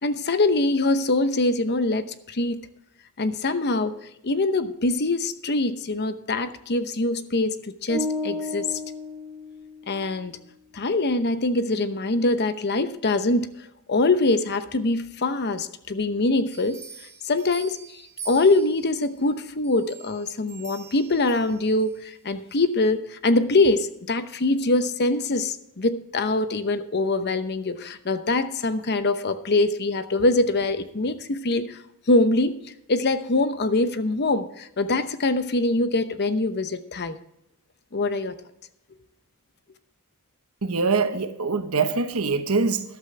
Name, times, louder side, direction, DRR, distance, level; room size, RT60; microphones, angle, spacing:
voice 1, 0.0-2.6 3.2-3.9 4.2-8.8 9.9-10.4 10.7-13.5 13.9-16.8 17.2-17.8 18.3-31.8 32.1-32.6 32.9-37.2 37.9-38.3, left 2 dB, 50° left, 11 dB, 0.8 m, -23 dB
sound 1, 7.9-10.1, left 2 dB, 15° left, 4.4 m, -32 dB
sound 2, 16.5-19.1 19.6-22.0 22.5-22.6, right 5 dB, 15° right, 4.3 m, -44 dB
voice 2, 40.6-42.8, right 4 dB, 70° right, 8 dB, 1.2 m, -23 dB
13.5 x 12.0 x 3.3 m, 0.81 s
head